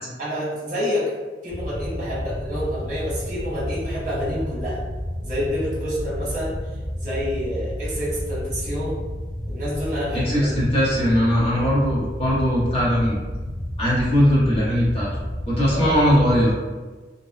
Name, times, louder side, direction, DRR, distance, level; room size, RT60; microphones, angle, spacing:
voice 1, 0.2-1.1 1.4-4.8 5.2-6.6 6.9-9.0 9.5-10.5 15.7-16.0, equal, 45° right, -8 dB, 1.0 m, -28 dB
sound 1, 1.5-16.5, equal, 5° left, 0.8 m, -31 dB
voice 2, 10.1-13.2 13.8-15.1 15.5-16.5, equal, 35° left, -8 dB, 0.9 m, -20 dB
2.7 x 2.0 x 2.3 m, 1.3 s
head